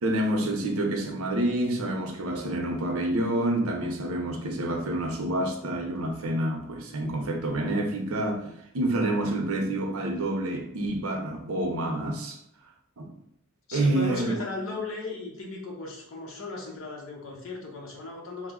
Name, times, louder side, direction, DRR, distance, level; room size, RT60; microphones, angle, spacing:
voice 1, 0.0-12.4 13.0-13.1 13.7-14.3, right 1 dB, 80° right, 3 dB, 0.6 m, -28 dB
voice 2, 13.7-18.5, left 3 dB, 70° left, -1 dB, 0.8 m, -36 dB
3.1 x 2.0 x 3.6 m, 0.76 s
head